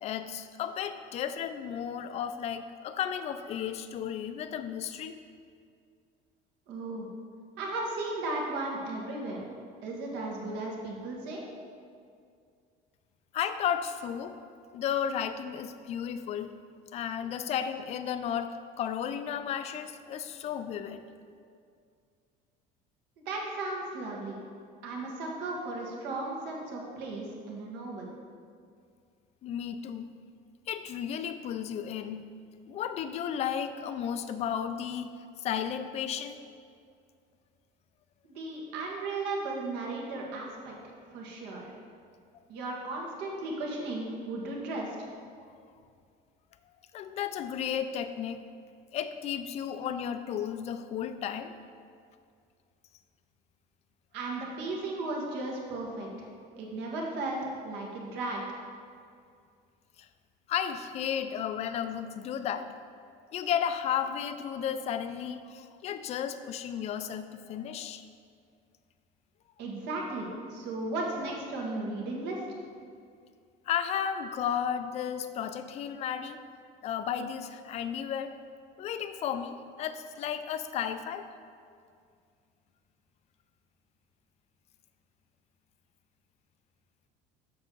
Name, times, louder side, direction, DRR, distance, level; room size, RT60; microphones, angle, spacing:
voice 1, 0.0-5.2 13.3-14.4 14.7-16.6 16.9-21.1 29.4-30.1 30.7-32.2 32.7-35.1 35.4-36.4 46.9-48.4 48.9-51.6 60.0-60.1 60.5-62.7 63.3-68.0 73.7-76.4 76.8-78.3 78.8-81.3, left 8 dB, 35° left, 10 dB, 0.4 m, -33 dB
voice 2, 6.7-7.1 7.6-9.5 9.8-11.4 23.2-24.4 24.8-28.1 38.3-41.7 42.5-44.9 54.1-56.3 56.6-58.4 69.6-72.4, right 2 dB, 70° right, -2 dB, 1.6 m, -35 dB
7.4 x 6.2 x 3.8 m, 2.3 s
cardioid pair, 165°, 18 cm